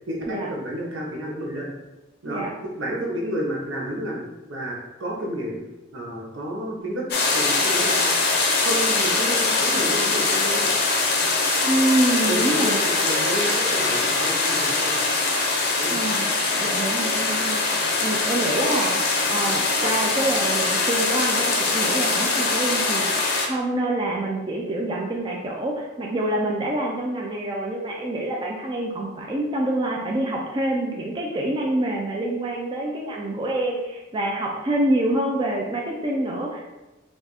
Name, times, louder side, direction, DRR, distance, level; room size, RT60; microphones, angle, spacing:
voice 1, 0.1-1.7 2.2-4.2 4.5-5.6 5.9-7.1 7.3-8.1 8.6-10.7 12.3-14.9 15.8-16.0, right 1 dB, 85° right, -3 dB, 1.1 m, -30 dB
sound 1, 7.1-23.5, left 3 dB, 55° left, 0.6 m, -22 dB
voice 2, 11.7-12.8 15.9-36.7, right 1 dB, 25° right, -2 dB, 0.4 m, -26 dB
3.6 x 2.5 x 4.0 m, 1.1 s
head